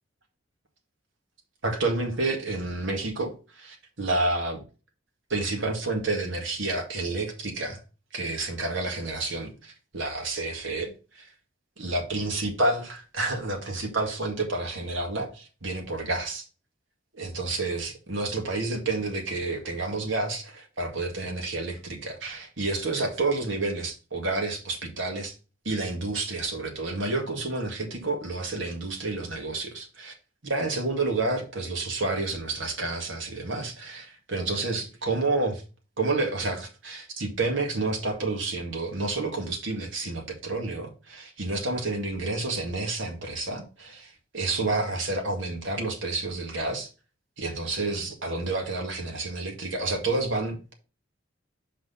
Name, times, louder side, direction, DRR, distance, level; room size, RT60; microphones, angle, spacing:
voice 1, 1.6-4.6 5.3-7.8 8.1-11.3 11.8-16.4 17.2-25.3 25.6-30.1 30.4-35.6 36.0-46.9 47.4-50.7, right 2 dB, 75° right, 2.0 m, -29 dB
6.1 x 4.7 x 5.5 m
head